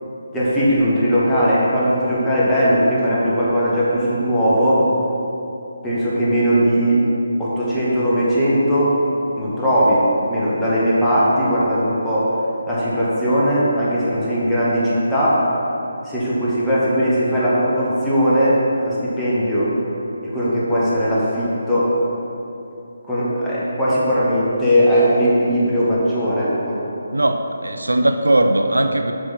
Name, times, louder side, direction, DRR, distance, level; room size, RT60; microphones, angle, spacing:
voice 1, 0.3-4.8 5.8-7.0 7.4-8.9 9.4-10.0 10.3-12.3 12.7-15.4 16.0-19.7 20.3-21.9 23.0-26.8, equal, 5° left, -10 dB, 1.5 m, -18 dB
voice 2, 27.1-29.1, right 1 dB, 75° right, 7 dB, 0.4 m, -18 dB
8.0 x 5.9 x 4.1 m, 2.9 s
figure-of-eight pair, 150°, 0 cm